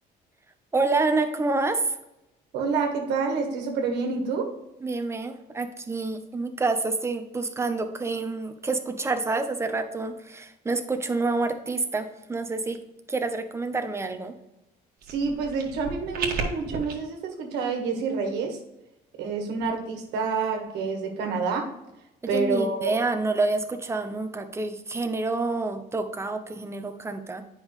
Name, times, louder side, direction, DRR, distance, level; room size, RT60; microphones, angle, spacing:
voice 1, 0.7-2.0 4.8-12.8 13.1-14.3 22.3-27.4, right 3 dB, 15° right, 7 dB, 0.9 m, -28 dB
voice 2, 2.5-4.5 15.1-18.6 19.2-21.7 22.3-23.0, right 4 dB, 85° right, 3 dB, 1.6 m, -28 dB
sound 1, 15.0-16.9, right 5 dB, 60° right, 1.6 m, -33 dB
8.6 x 5.5 x 3.2 m, 0.91 s
cardioid pair, 110°, 17 cm